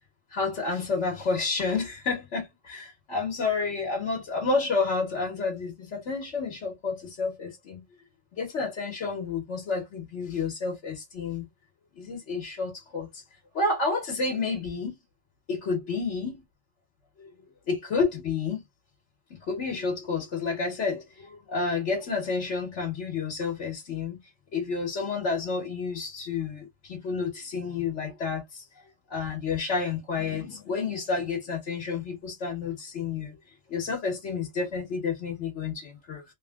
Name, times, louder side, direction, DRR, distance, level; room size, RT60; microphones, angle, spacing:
voice 1, 0.3-7.8 8.3-11.5 12.0-13.2 13.5-15.0 15.5-16.4 17.2-17.3 17.7-18.6 19.3-28.6 29.1-33.4 33.7-36.2, left 4 dB, 80° left, 1.3 m, -30 dB
3.1 x 2.6 x 2.3 m
omnidirectional pair, 1.2 m